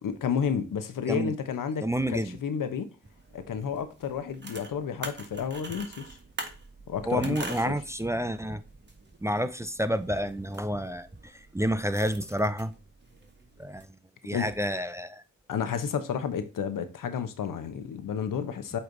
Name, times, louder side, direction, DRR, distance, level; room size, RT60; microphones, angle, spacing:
voice 1, 0.0-2.9 3.3-6.2 6.9-7.4 7.6-7.7 14.3-14.5 15.5-18.8, left 7 dB, 80° left, 0.9 m, -31 dB
voice 2, 1.8-2.4 7.1-8.6 9.2-12.7 13.6-13.9 14.2-15.2, equal, 10° right, 0.5 m, -29 dB
sound 1, 3.0-13.8, right 3 dB, 35° right, 1.7 m, -45 dB
7.9 x 3.3 x 3.9 m
cardioid pair, 60°, 32 cm